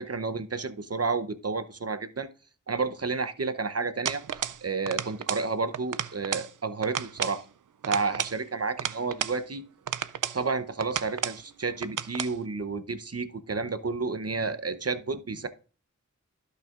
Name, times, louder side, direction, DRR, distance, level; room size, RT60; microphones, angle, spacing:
voice 1, 0.0-2.3 2.7-4.2 4.6-7.4 7.9-9.6 10.3-15.5, right 4 dB, 50° right, 11 dB, 0.8 m, -31 dB
sound 1, 4.1-4.6 4.9-5.5 5.7-6.5 6.8-7.4 7.8-9.4 9.9-10.4 10.8-11.4 11.8-12.3, right 8 dB, 80° right, 0.5 m, -32 dB
15.5 x 5.6 x 2.4 m, 0.37 s
wide cardioid pair, 45°, 31 cm